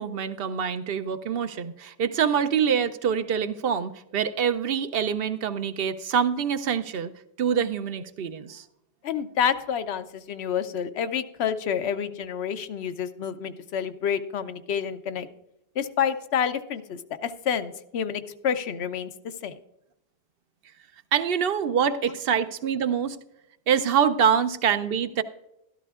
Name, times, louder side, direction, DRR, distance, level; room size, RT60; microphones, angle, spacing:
voice 1, 0.0-7.1 7.4-8.6 21.1-23.2 23.7-25.2, right 7 dB, 70° right, 11 dB, 0.8 m, -25 dB
voice 2, 9.0-15.3 15.8-19.1 19.4-19.5, left 8 dB, 85° left, 11 dB, 0.9 m, -28 dB
13.5 x 12.5 x 2.4 m, 0.85 s
omnidirectional pair, 1.1 m